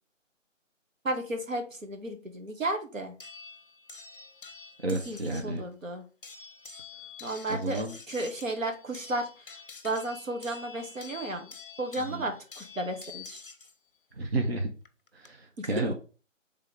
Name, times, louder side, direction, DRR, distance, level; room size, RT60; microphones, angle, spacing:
voice 1, 1.0-3.1 5.1-6.0 7.2-9.3 9.8-11.5 11.8-13.4 15.6-15.7, right 2 dB, 85° right, 4 dB, 1.8 m, -33 dB
sound 1, 3.2-5.6 6.2-13.7 14.8-15.3, left 4 dB, 45° left, 0.7 m, -47 dB
voice 2, 4.8-5.6 7.5-7.9 12.1-12.3 14.2-14.7 15.1-15.9, right 2 dB, 50° right, 2 dB, 1.1 m, -31 dB
5.0 x 3.7 x 5.3 m, 0.35 s
figure-of-eight pair, 170°, 39 cm